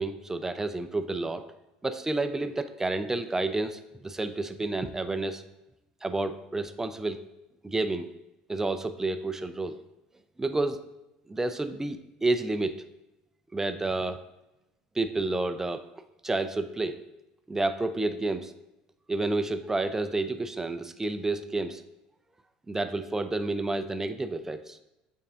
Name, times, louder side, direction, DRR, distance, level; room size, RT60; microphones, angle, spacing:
voice 1, 0.0-1.4 1.8-5.4 6.0-7.3 7.6-8.1 8.5-9.8 10.4-10.8 11.3-12.8 13.5-14.2 14.9-15.9 16.2-17.1 17.5-18.5 19.1-21.8 22.7-24.8, right 2 dB, 15° right, 10 dB, 0.5 m, -30 dB
8.5 x 3.6 x 3.7 m, 0.93 s
supercardioid pair, 85°, 3 cm